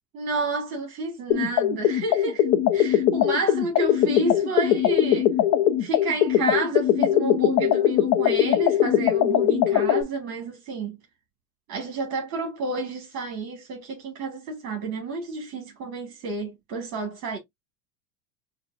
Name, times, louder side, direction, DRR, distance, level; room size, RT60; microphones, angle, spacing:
voice 1, 0.1-5.3 5.8-11.0 11.7-17.4, right 3 dB, 40° right, 1.8 m, -30 dB
sound 1, 1.3-10.0, left 11 dB, 35° left, 0.7 m, -21 dB
5.9 x 2.3 x 2.5 m
supercardioid pair, 125°, 42 cm